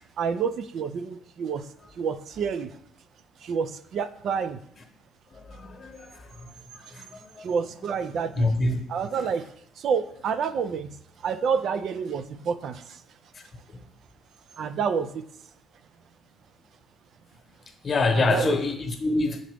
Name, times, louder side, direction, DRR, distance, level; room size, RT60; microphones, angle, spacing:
voice 1, 0.2-1.7 2.0-2.7 3.4-4.6 7.4-8.5 8.9-11.0 11.2-13.0 14.6-15.3 18.1-18.6, right 6 dB, 60° right, 11 dB, 0.3 m, -29 dB
voice 2, 5.5-6.1 6.9-7.1 7.4-7.5 8.4-8.8 17.8-19.4, left 2 dB, 35° left, 5 dB, 1.0 m, -25 dB
7.3 x 3.9 x 3.4 m, 0.70 s
cardioid pair, 100°, 0 cm